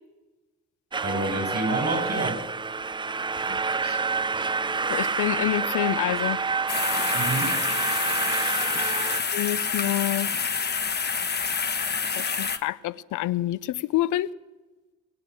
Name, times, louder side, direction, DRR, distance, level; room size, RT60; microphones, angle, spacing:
sound 1, 0.9-9.2, right 4 dB, 15° right, 0.4 m, -28 dB
voice 1, 1.0-2.4 3.8-4.0 4.3-4.5 7.1-7.5, right 2 dB, 35° right, 6 dB, 6.8 m, -29 dB
voice 2, 4.9-6.4 9.3-10.3 12.1-14.3, left 15 dB, 80° left, 19 dB, 0.6 m, -27 dB
sound 2, 6.7-12.6, left 5 dB, 35° left, 1.2 m, -27 dB
19.5 x 9.7 x 6.9 m, 1.2 s
cardioid pair, 90°, 30 cm